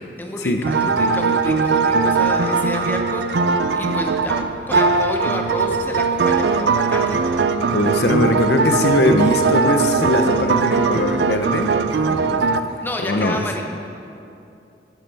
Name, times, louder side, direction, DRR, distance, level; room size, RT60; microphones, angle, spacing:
voice 1, 0.2-3.2 3.7-7.2 12.8-13.6, left 1 dB, 10° left, 2 dB, 0.5 m, -29 dB
sound 1, 0.6-12.6, right 4 dB, 75° right, 0.4 m, -20 dB
voice 2, 7.7-12.4 12.8-13.4, left 2 dB, 75° left, 6 dB, 0.7 m, -21 dB
11.5 x 9.2 x 3.4 m, 2.7 s
head